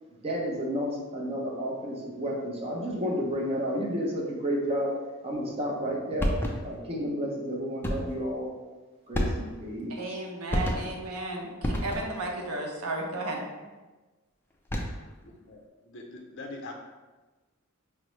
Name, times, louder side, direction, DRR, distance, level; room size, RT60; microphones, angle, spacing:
voice 1, 0.2-4.9 5.2-6.3 6.6-8.5 9.1-9.9, equal, 25° right, -2 dB, 0.7 m, -31 dB
sound 1, 6.2-6.8 7.8-8.2 9.1-9.7 10.5-11.1 11.6-12.3 14.5-15.1, equal, 10° left, 0.3 m, -30 dB
voice 2, 9.9-13.4, right 2 dB, 80° right, 0 dB, 0.7 m, -34 dB
voice 3, 15.8-16.7, left 2 dB, 55° left, 1 dB, 0.6 m, -42 dB
4.4 x 2.0 x 3.1 m, 1.2 s
head